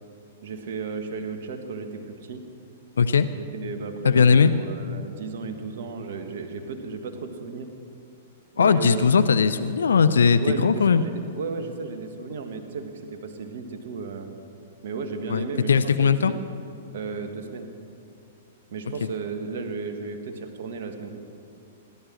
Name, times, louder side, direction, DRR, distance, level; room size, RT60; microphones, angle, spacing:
voice 1, 0.4-2.4 3.3-7.7 8.5-9.3 10.4-14.3 14.8-15.7 16.0-16.4 16.9-17.7 18.7-21.2, right 4 dB, 55° right, 6 dB, 1.6 m, -34 dB
voice 2, 3.0-3.3 4.0-4.5 8.6-11.0 15.3-16.3, left 6 dB, 65° left, 12 dB, 0.5 m, -19 dB
18.0 x 11.0 x 6.3 m, 2.5 s
figure-of-eight pair, 105°, 0 cm